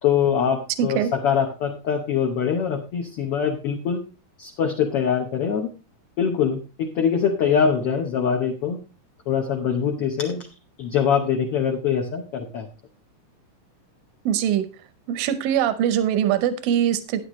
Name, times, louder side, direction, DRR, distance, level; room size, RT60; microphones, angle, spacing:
voice 1, 0.0-4.0 4.4-5.7 6.2-8.8 9.3-10.5 10.8-12.7, left 7 dB, 70° left, 3 dB, 1.4 m, -23 dB
voice 2, 0.8-1.1 14.3-14.7 15.1-17.2, right 10 dB, 90° right, 12 dB, 2.5 m, -22 dB
11.5 x 9.7 x 3.1 m, 0.31 s
omnidirectional pair, 3.9 m